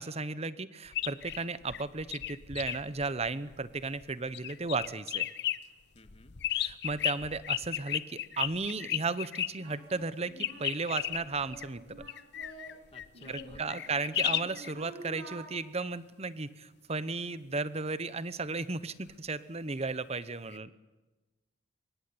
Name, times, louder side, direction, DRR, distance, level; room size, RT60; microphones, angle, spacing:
voice 1, 0.0-5.3 6.5-11.8 13.3-20.7, right 3 dB, 30° right, 15 dB, 0.9 m, -35 dB
sound 1, 0.9-4.0 4.3-5.6 6.0-9.5 10.4-14.7 20.5-20.6, left 13 dB, 55° left, 0.8 m, -34 dB
voice 2, 5.9-6.4 12.9-13.9, left 2 dB, 30° left, 7 dB, 2.0 m, -55 dB
Singing, 9.0-9.1 9.6-12.8 13.1-15.4, right 2 dB, 85° right, 8.0 m, -49 dB
24.5 x 22.0 x 9.7 m, 1.1 s
head